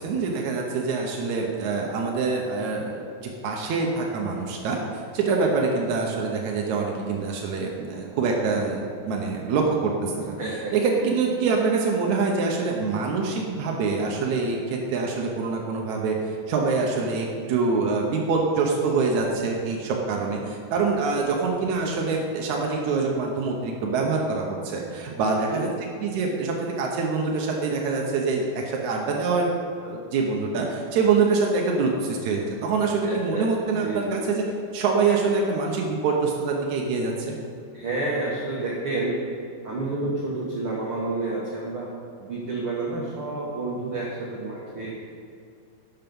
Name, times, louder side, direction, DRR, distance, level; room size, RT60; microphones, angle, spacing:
voice 1, 0.0-10.4 10.7-25.7 26.0-29.5 29.8-34.5 34.7-37.3, right 4 dB, 85° right, 0 dB, 1.6 m, -25 dB
voice 2, 10.4-11.1 25.1-25.7 33.0-33.4 33.8-34.3 37.7-39.2 39.6-41.9 42.2-45.1, right 2 dB, 65° right, -5 dB, 1.3 m, -30 dB
11.5 x 8.2 x 5.4 m, 2.5 s
omnidirectional pair, 4.8 m